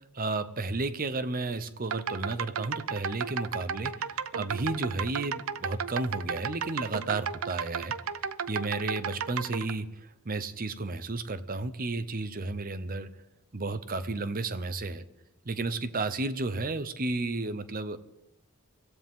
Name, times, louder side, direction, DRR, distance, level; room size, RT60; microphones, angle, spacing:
voice 1, 0.1-7.9 8.5-9.9 10.2-13.1 13.5-15.0 15.4-18.0, right 3 dB, 45° right, 13 dB, 0.8 m, -32 dB
sound 1, 1.8-9.7, right 6 dB, 75° right, 0.6 m, -34 dB
24.0 x 15.0 x 3.7 m, 0.91 s
head